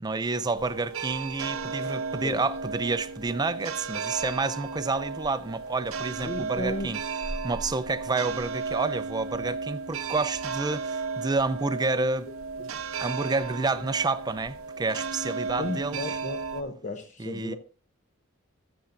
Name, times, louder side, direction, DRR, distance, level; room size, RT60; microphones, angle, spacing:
voice 1, 0.0-7.0 7.4-12.3 13.0-16.2 17.2-17.6, right 3 dB, 20° right, 0.4 m, -29 dB
sound 1, 0.5-16.6, right 4 dB, 90° right, 0.8 m, -34 dB
voice 2, 6.2-6.9 15.6-17.6, left 2 dB, 35° left, 0.8 m, -34 dB
20.0 x 7.1 x 2.6 m
head